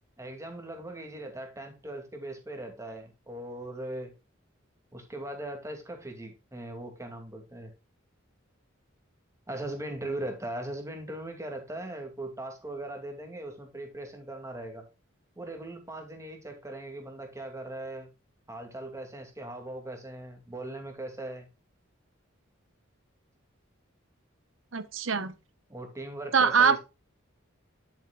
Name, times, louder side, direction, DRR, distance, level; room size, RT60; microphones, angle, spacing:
voice 1, 0.2-4.1 4.9-7.7 9.5-14.8 15.4-18.1 18.5-21.5 25.7-26.8, right 1 dB, 15° right, 2.5 m, -39 dB
voice 2, 24.7-25.3 26.3-26.8, right 6 dB, 70° right, 1.0 m, -23 dB
11.0 x 7.4 x 2.4 m
head